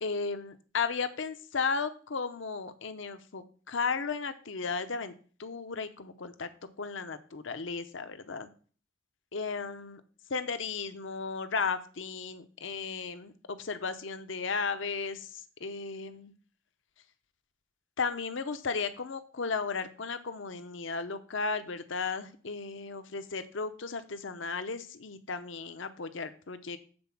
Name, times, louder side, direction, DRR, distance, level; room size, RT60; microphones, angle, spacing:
voice 1, 0.0-5.1 5.4-6.5 6.8-8.5 9.3-10.0 10.3-16.3 18.0-26.8, left 5 dB, 60° left, 10 dB, 0.7 m, -35 dB
7.9 x 4.3 x 7.1 m, 0.41 s
head